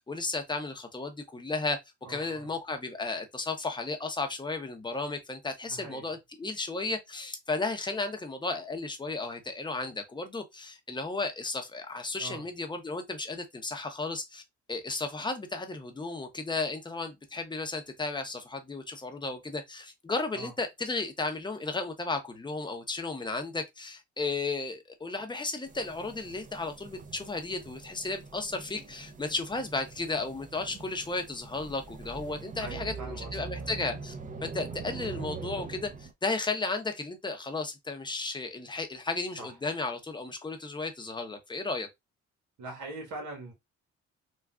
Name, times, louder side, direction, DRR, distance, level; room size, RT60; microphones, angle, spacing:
voice 1, 0.1-1.8 2.1-14.4 14.7-34.1 34.4-41.9, left 3 dB, 15° left, 0.7 m, -34 dB
voice 2, 2.0-2.5 5.7-6.1 12.2-12.5 20.3-20.5 32.6-33.4 39.4-39.5 42.6-43.5, right 2 dB, 85° right, 1.3 m, -42 dB
sound 1, 25.7-36.1, right 4 dB, 25° right, 0.5 m, -43 dB
3.5 x 2.3 x 2.3 m
cardioid pair, 90°, 30 cm